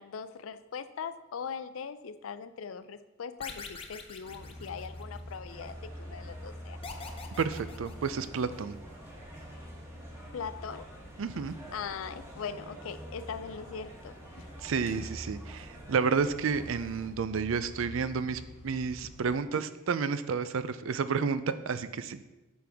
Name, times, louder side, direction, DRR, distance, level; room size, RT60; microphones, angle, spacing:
voice 1, 0.0-6.8 10.3-10.9 11.7-14.5, left 6 dB, 80° left, 13 dB, 0.4 m, -40 dB
sound 1, 3.4-5.4 6.8-8.6, left 4 dB, 30° left, 0.7 m, -45 dB
sound 2, 4.2-19.4, equal, 30° right, 2.6 m, -46 dB
sound 3, 5.5-17.1, right 1 dB, 15° right, 1.4 m, -51 dB
voice 2, 7.4-8.8 11.2-11.5 14.6-22.2, right 5 dB, 75° right, 13 dB, 0.4 m, -31 dB
8.5 x 6.0 x 3.5 m, 1.1 s
head